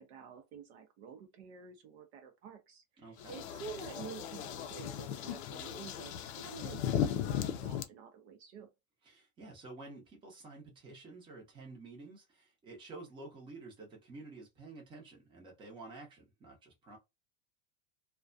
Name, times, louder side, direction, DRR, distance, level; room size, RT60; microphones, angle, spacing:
voice 1, 0.0-8.7, right 7 dB, 55° right, 0.6 m, -49 dB
voice 2, 3.0-3.4 9.0-17.0, right 3 dB, 10° right, 0.7 m, -50 dB
sound 1, 3.2-7.8, left 10 dB, 55° left, 0.5 m, -37 dB
2.3 x 2.2 x 2.5 m
supercardioid pair, 155°, 40 cm